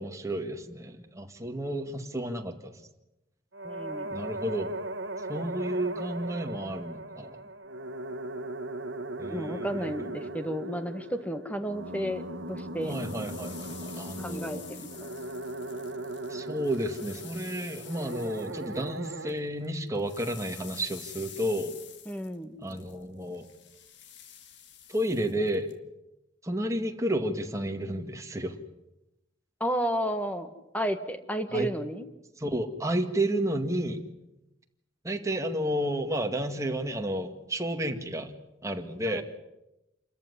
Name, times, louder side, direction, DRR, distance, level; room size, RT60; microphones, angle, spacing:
voice 1, 0.0-2.8 4.1-4.8 5.2-7.4 9.2-10.3 12.8-14.6 16.3-21.7 22.6-23.5 24.9-25.7 26.4-28.6 31.5-31.7 32.4-34.0 35.0-38.3 38.6-39.2, right 1 dB, 15° right, 4 dB, 2.0 m, -31 dB
sound 1, 3.5-19.3, right 2 dB, 75° right, 1.3 m, -38 dB
voice 2, 3.6-4.1 9.3-12.2 12.5-12.9 14.2-15.1 22.1-22.6 29.6-32.1 39.0-39.2, equal, 10° left, 8 dB, 1.6 m, -32 dB
sound 2, 12.6-19.4 19.6-25.7, left 9 dB, 65° left, 1.9 m, -49 dB
27.5 x 14.0 x 9.7 m, 0.94 s
head